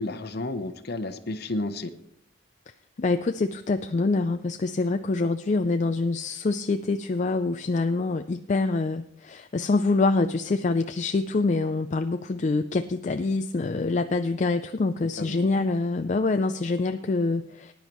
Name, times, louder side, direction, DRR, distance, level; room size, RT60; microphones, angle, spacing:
voice 1, 0.0-1.9 15.2-15.5, left 2 dB, 50° left, 10 dB, 0.8 m, -32 dB
voice 2, 3.0-17.7, left 3 dB, 35° left, 8 dB, 0.4 m, -25 dB
19.0 x 10.0 x 3.1 m, 0.73 s
head